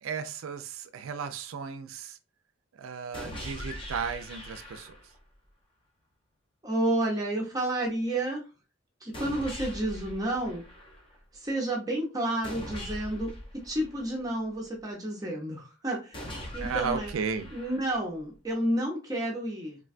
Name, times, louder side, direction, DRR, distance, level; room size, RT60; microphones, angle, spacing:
voice 1, 0.0-2.2 2.8-4.9 16.6-17.5, right 6 dB, 80° right, 0.4 m, -34 dB
sound 1, 3.1-5.2 9.1-11.2 12.4-14.5 16.1-18.2, equal, 25° left, 0.6 m, -41 dB
voice 2, 6.6-8.5 9.0-10.6 11.3-13.3 13.6-17.1 17.5-19.8, right 1 dB, 15° right, 0.5 m, -30 dB
3.2 x 2.2 x 2.4 m
head